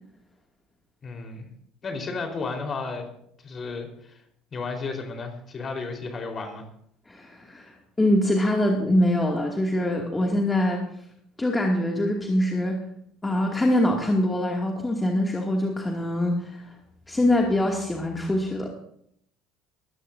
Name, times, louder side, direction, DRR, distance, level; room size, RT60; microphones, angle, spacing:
voice 1, 1.0-1.5 1.8-3.1 3.4-4.2 4.5-6.6, left 4 dB, 35° left, 3 dB, 4.3 m, -33 dB
voice 2, 7.1-7.7 8.0-10.8 11.4-12.8 13.2-16.7 17.1-18.7, left 1 dB, 15° left, 0 dB, 2.4 m, -24 dB
22.0 x 15.5 x 2.7 m, 0.70 s
hypercardioid pair, 60°, 0 cm